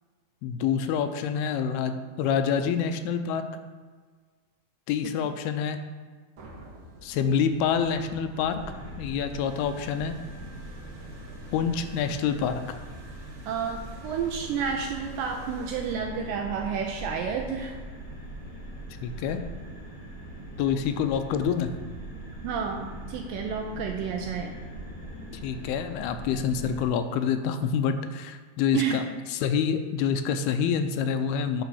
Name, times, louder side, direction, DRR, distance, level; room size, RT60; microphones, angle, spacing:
voice 1, 0.4-3.5 4.9-5.8 7.0-8.6 9.0-10.2 11.5-12.6 19.0-19.4 20.6-21.7 25.4-29.0 29.3-31.6, left 7 dB, 85° left, 8 dB, 2.5 m, -27 dB
sound 1, 6.4-15.9, right 1 dB, 60° right, 1.4 m, -50 dB
sound 2, 8.5-26.9, right 1 dB, 30° left, 2.8 m, -41 dB
voice 2, 13.5-17.8 22.4-24.5 28.7-29.0, right 6 dB, 80° right, 2 dB, 2.1 m, -30 dB
9.3 x 4.6 x 6.2 m, 1.5 s
omnidirectional pair, 4.5 m